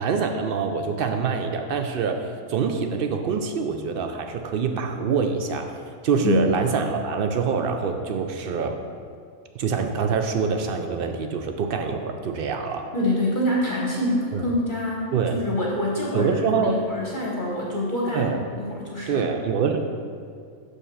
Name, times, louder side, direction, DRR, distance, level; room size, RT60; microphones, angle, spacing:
voice 1, 0.0-5.8 6.0-8.8 9.5-12.9 14.3-14.5 15.1-15.4 16.1-16.8 18.1-18.4 19.1-19.8, right 5 dB, 80° right, 5 dB, 0.5 m, -25 dB
voice 2, 12.9-19.3, left 1 dB, 40° left, -3 dB, 0.9 m, -26 dB
6.6 x 5.4 x 5.6 m, 2.3 s
omnidirectional pair, 1.5 m